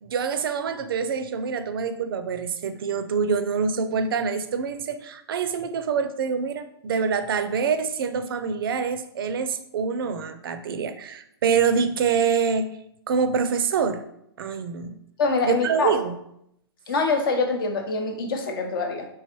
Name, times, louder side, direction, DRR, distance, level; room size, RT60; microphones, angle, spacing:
voice 1, 0.0-12.7 13.1-14.0 14.4-15.0 15.4-16.1, right 6 dB, 60° right, 10 dB, 0.4 m, -25 dB
voice 2, 15.2-15.9 16.9-19.1, left 3 dB, 55° left, 5 dB, 0.7 m, -24 dB
3.4 x 3.1 x 2.9 m, 0.75 s
hypercardioid pair, 125°, 14 cm